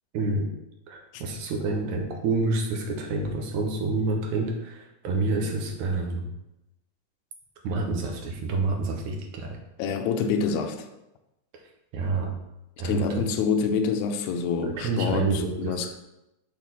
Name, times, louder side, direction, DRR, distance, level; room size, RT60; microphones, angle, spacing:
voice 1, 0.1-0.5 0.9-6.3 7.6-9.6 11.9-12.3 12.8-13.3 14.6-15.9, right 3 dB, 75° right, 2 dB, 2.4 m, -28 dB
voice 2, 9.8-10.9 12.8-15.9, left 5 dB, 80° left, 5 dB, 2.0 m, -27 dB
6.6 x 3.7 x 6.0 m, 0.91 s
omnidirectional pair, 3.5 m